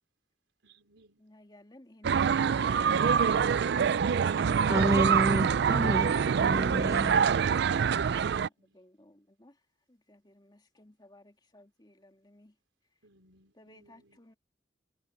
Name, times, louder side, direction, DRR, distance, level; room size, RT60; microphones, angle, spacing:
voice 1, 0.6-1.2 8.6-8.8 13.0-14.2, right 2 dB, 80° right, 3.9 m, -63 dB
voice 2, 1.2-5.9 8.3-12.6 13.5-14.3, left 1 dB, 25° left, 2.3 m, -58 dB
sound 1, 2.0-8.5, right 7 dB, 60° right, 0.4 m, -25 dB
voice 3, 4.7-7.2, right 1 dB, 15° right, 0.9 m, -30 dB
head